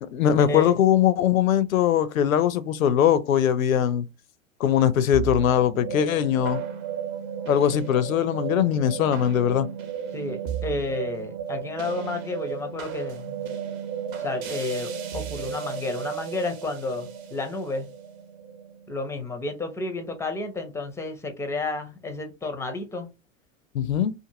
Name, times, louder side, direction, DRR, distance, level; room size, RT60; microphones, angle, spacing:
voice 1, 0.1-4.1 4.6-6.6 7.5-9.7 23.7-24.1, left 9 dB, 85° left, 0.5 m, -21 dB
sound 1, 5.1-19.6, right 8 dB, 50° right, 0.9 m, -34 dB
voice 2, 10.1-13.5 14.2-17.9 18.9-23.1, left 2 dB, 5° left, 0.5 m, -31 dB
2.6 x 2.5 x 2.7 m
hypercardioid pair, 100°, 40 cm